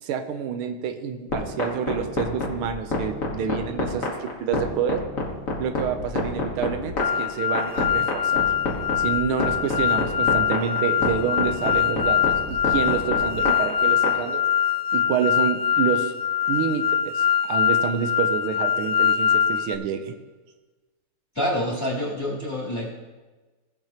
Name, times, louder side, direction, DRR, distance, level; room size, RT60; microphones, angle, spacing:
voice 1, 0.0-5.0 5.6-8.4 9.0-14.4 14.9-16.1 16.5-20.1, right 7 dB, 90° right, 7 dB, 1.6 m, -28 dB
sound 1, 1.3-14.1, left 3 dB, 40° left, 1.8 m, -27 dB
sound 2, 7.0-19.8, left 9 dB, 75° left, 1.0 m, -23 dB
voice 2, 21.3-22.9, left 1 dB, 10° left, -8 dB, 3.1 m, -27 dB
16.5 x 7.8 x 2.9 m, 1.2 s
omnidirectional pair, 2.3 m